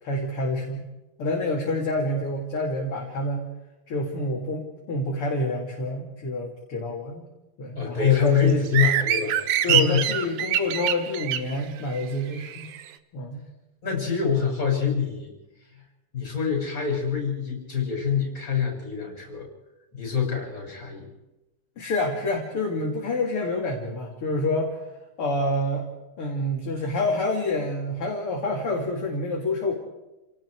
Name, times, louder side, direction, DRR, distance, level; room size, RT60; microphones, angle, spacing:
voice 1, 0.0-0.8 1.2-3.4 3.9-7.3 7.6-8.7 9.6-12.7 13.1-13.4 21.8-24.8 25.2-25.8 26.2-29.7, left 1 dB, 40° left, -1 dB, 3.5 m, -27 dB
voice 2, 7.8-10.1 13.8-15.3 16.1-19.5 19.9-21.1, left 7 dB, 25° left, 0 dB, 6.9 m, -25 dB
sound 1, 8.7-12.8, right 10 dB, 70° right, 2.0 m, -25 dB
30.0 x 18.0 x 4.8 m, 1.0 s
omnidirectional pair, 3.8 m